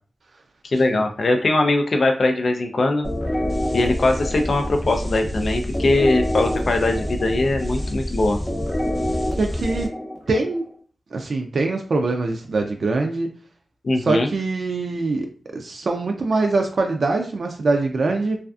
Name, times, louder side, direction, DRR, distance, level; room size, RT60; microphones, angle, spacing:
voice 1, 0.7-3.1 3.7-8.4 13.8-14.3, left 2 dB, 65° left, 5 dB, 0.3 m, -21 dB
sound 1, 3.0-10.7, left 1 dB, 25° left, 0.6 m, -26 dB
voice 2, 9.3-9.9 10.3-10.7 11.1-13.3 14.0-15.3 15.5-18.4, right 3 dB, 70° right, 3 dB, 0.3 m, -23 dB
2.4 x 2.4 x 2.3 m, 0.43 s
cardioid pair, 55°, 0 cm